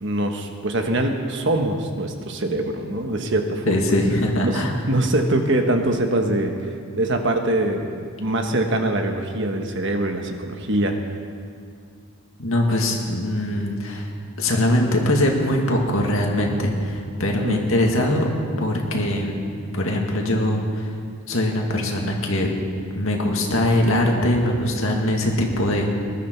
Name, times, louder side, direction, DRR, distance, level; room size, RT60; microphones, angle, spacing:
voice 1, 0.0-3.7 4.4-4.6 4.9-11.1 17.4-17.6, right 1 dB, 55° right, 4 dB, 1.3 m, -23 dB
voice 2, 3.7-4.7 12.4-14.1 14.4-18.3 18.6-19.4 19.7-20.9 21.3-22.5 22.9-25.9, left 1 dB, 65° left, 0 dB, 2.1 m, -22 dB
21.0 x 13.0 x 4.6 m, 2.3 s
head